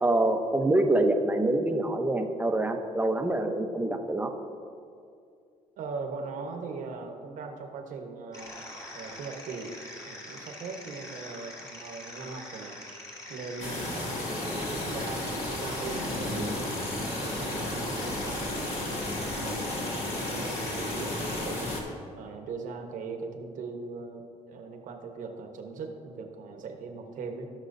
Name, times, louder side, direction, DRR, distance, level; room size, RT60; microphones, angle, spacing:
voice 1, 0.0-4.3, right 2 dB, 15° right, 4 dB, 0.9 m, -25 dB
voice 2, 5.8-8.6 8.9-9.8 10.1-12.8 13.3-14.3 14.7-16.7 17.0-18.9 19.4-21.8 22.1-27.5, right 4 dB, 70° right, 4 dB, 1.2 m, -40 dB
sound 1, 8.3-21.5, left 1 dB, 25° left, 2.2 m, -43 dB
sound 2, 13.6-21.8, left 1 dB, 50° left, 2.0 m, -33 dB
17.0 x 6.2 x 2.7 m, 2.4 s
cardioid pair, 95°, 14 cm